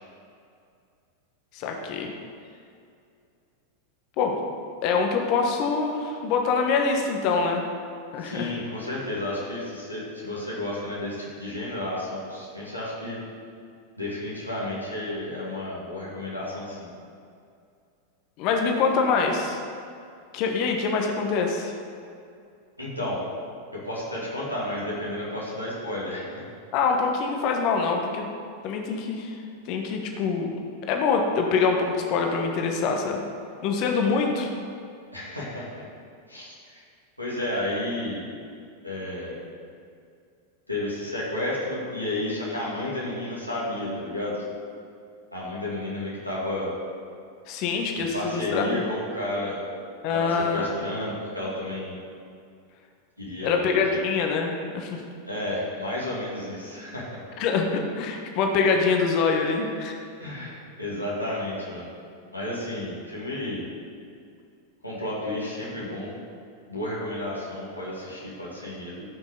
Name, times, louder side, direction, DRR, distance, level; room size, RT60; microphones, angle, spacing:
voice 1, 1.5-2.1 4.2-4.4 4.8-7.6 8.1-8.5 18.4-19.6 20.3-21.7 26.7-28.3 28.6-29.4 29.7-30.5 30.9-33.2 33.6-34.5 47.5-48.8 50.0-50.7 53.4-55.0 57.4-60.0, left 5 dB, 40° left, 2 dB, 1.2 m, -25 dB
voice 2, 8.2-13.2 14.0-16.9 22.8-23.2 23.7-26.4 35.1-35.9 36.3-36.8 37.2-38.3 38.8-39.4 40.7-44.4 45.3-46.7 47.9-49.6 50.1-51.9 53.2-54.0 55.3-57.2 60.2-61.9 62.3-63.6 64.8-66.2 66.7-69.0, left 1 dB, 90° left, -7 dB, 2.4 m, -32 dB
15.0 x 6.1 x 3.8 m, 2.4 s
figure-of-eight pair, 90°, 0 cm